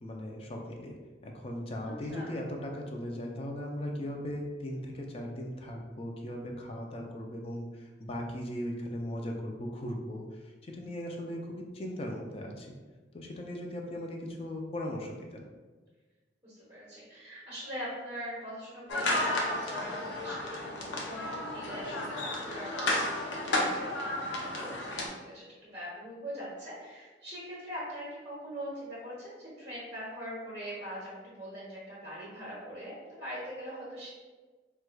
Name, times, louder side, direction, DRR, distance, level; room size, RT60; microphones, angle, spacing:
voice 1, 0.0-1.0 1.2-12.7 13.1-15.4, equal, 30° left, 1 dB, 0.4 m, -38 dB
voice 2, 1.8-2.3 16.4-34.1, equal, 25° right, -9 dB, 0.9 m, -42 dB
sound 1, 18.9-25.1, left 1 dB, 80° left, 0.6 m, -32 dB
4.6 x 2.2 x 2.2 m, 1.3 s
head